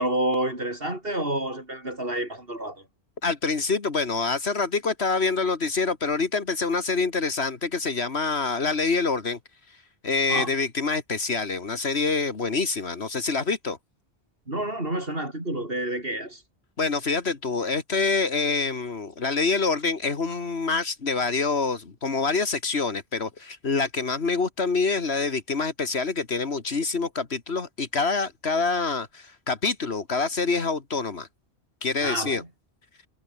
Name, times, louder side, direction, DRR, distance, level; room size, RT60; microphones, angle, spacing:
voice 1, 0.0-2.8 10.3-10.5 14.5-16.4 32.0-32.5, right 1 dB, 60° right, 6.4 m, -29 dB
voice 2, 3.2-9.4 10.0-13.8 16.8-31.3 31.8-32.4, left 4 dB, 75° left, 2.2 m, -26 dB
omnidirectional pair, 1.1 m